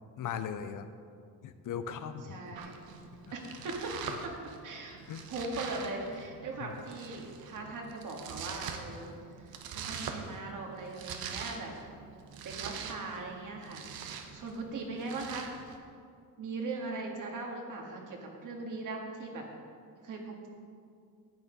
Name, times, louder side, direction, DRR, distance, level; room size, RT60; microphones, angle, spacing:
voice 1, 0.2-0.9 1.4-2.6 5.1-5.3 6.6-6.7, left 8 dB, 60° left, 10 dB, 0.7 m, -38 dB
voice 2, 2.3-2.7 3.3-3.9 4.2-4.3 4.6-5.0 5.3-11.8 12.4-15.5 16.4-19.4 20.0-20.5, right 3 dB, 55° right, 1 dB, 2.0 m, -40 dB
Domestic sounds home sounds, 2.5-15.8, right 6 dB, 75° right, 1.1 m, -44 dB
10.5 x 8.5 x 5.2 m, 2.2 s
cardioid pair, 130°, 37 cm